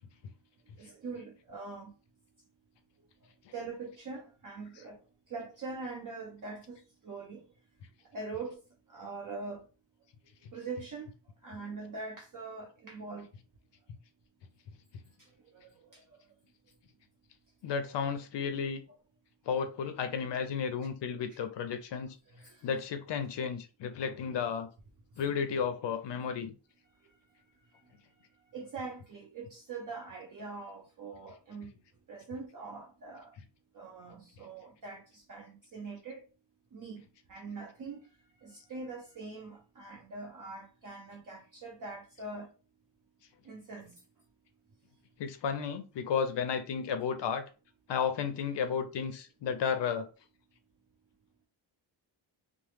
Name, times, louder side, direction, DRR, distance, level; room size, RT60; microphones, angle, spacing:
voice 1, 0.8-1.9 3.5-5.0 5.3-6.8 7.0-7.4 8.1-8.6 8.9-9.6 10.5-11.1 11.4-13.3 15.9-16.0 21.3-21.4 22.3-22.5 28.5-31.7 32.1-33.3 33.7-36.2 36.7-38.0 38.4-42.5 43.5-44.0, right 3 dB, 40° right, 0.6 m, -43 dB
voice 2, 17.6-18.8 19.5-22.2 22.6-24.7 25.2-26.5 45.2-47.4 47.9-50.1, left 6 dB, 60° left, 0.5 m, -33 dB
2.9 x 2.0 x 3.2 m
cardioid pair, 120°, 48 cm